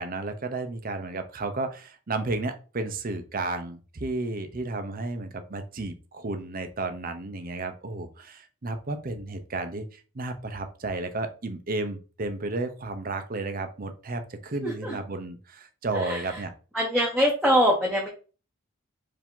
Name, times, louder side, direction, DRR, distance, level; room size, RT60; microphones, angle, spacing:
voice 1, 0.0-16.5, right 2 dB, 45° right, 8 dB, 0.7 m, -33 dB
voice 2, 14.6-15.0 15.9-16.4 16.7-18.1, equal, 5° right, -3 dB, 0.8 m, -24 dB
4.8 x 2.8 x 3.7 m, 0.35 s
head